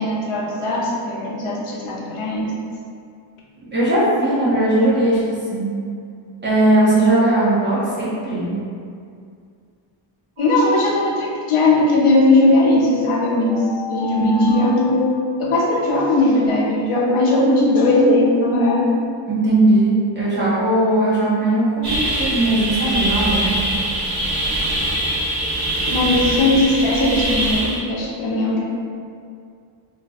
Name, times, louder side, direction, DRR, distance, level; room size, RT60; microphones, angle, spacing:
voice 1, 0.0-2.5 10.4-18.8 25.9-28.6, left 2 dB, 80° left, -4 dB, 0.8 m, -18 dB
voice 2, 3.7-5.2 5.5-5.7 6.4-8.6 14.1-14.5 19.3-23.8, right 1 dB, 20° right, -10 dB, 0.9 m, -18 dB
sound 1, 10.4-11.4 12.5-15.8, left 3 dB, 75° right, 0.7 m, -34 dB
sound 2, 21.8-27.8, right 1 dB, 50° right, 1.1 m, -22 dB
2.6 x 2.2 x 4.0 m, 2.3 s
wide cardioid pair, 170°, 50 cm